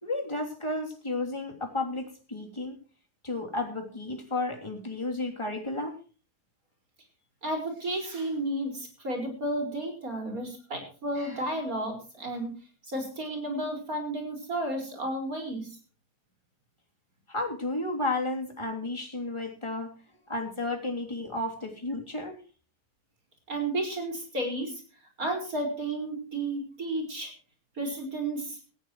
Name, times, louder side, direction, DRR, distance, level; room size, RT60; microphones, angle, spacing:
voice 1, 0.0-2.8 3.2-6.0 17.3-20.0 20.3-22.4, left 2 dB, 15° left, 2 dB, 3.1 m, -32 dB
voice 2, 7.4-12.5 12.8-15.7 23.5-24.8 25.2-27.3 27.8-28.6, right 1 dB, 60° right, 4 dB, 5.8 m, -32 dB
18.5 x 15.5 x 3.1 m, 0.37 s
omnidirectional pair, 1.7 m